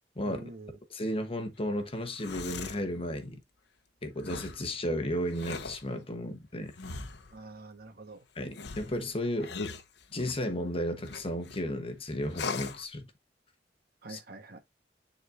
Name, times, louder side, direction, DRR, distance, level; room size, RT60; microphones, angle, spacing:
voice 1, 0.2-0.8 7.3-8.2 14.0-14.6, right 2 dB, 60° right, 1.3 m, -46 dB
voice 2, 0.9-3.4 4.0-6.7 8.3-9.5 10.1-13.1 14.1-14.2, equal, 30° left, 1.1 m, -33 dB
sound 1, 2.0-2.9 4.2-4.6 5.3-5.8 6.8-7.3 8.5-10.5 11.1-11.6 12.3-12.8, left 4 dB, 70° left, 0.8 m, -39 dB
9.8 x 4.1 x 2.6 m
head